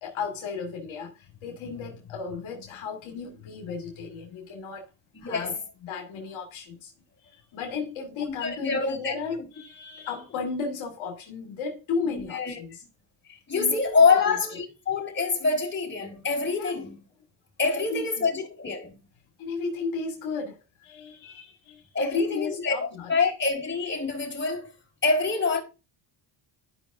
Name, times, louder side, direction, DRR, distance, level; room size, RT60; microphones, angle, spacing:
voice 1, 0.0-4.9 5.2-5.6 5.8-6.9 7.2-12.8 13.6-14.4 16.6-16.7 17.7-18.3 19.4-23.1, left 4 dB, 70° left, 1.9 m, -34 dB
voice 2, 5.1-5.6 8.3-9.1 12.1-12.6 13.3-17.0 17.6-18.9 21.9-24.7 25.0-25.6, left 4 dB, 20° left, 3.9 m, -26 dB
12.5 x 5.3 x 2.6 m
cardioid pair, 90°, 49 cm